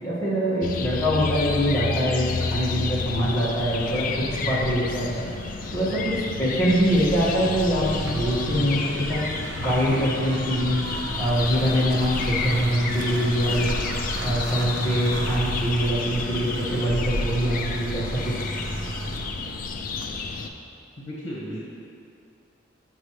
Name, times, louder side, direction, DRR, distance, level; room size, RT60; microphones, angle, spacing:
voice 1, 0.0-5.3 5.7-9.2 9.6-10.8 11.2-13.8 14.2-18.5, equal, 15° left, -10 dB, 1.7 m, -24 dB
sound 1, 0.6-20.5, left 4 dB, 45° left, 0.4 m, -31 dB
sound 2, 2.2-20.4, right 1 dB, 85° right, 0.6 m, -34 dB
voice 2, 21.0-21.6, equal, 65° left, -6 dB, 1.2 m, -34 dB
7.9 x 6.0 x 3.1 m, 2.5 s
head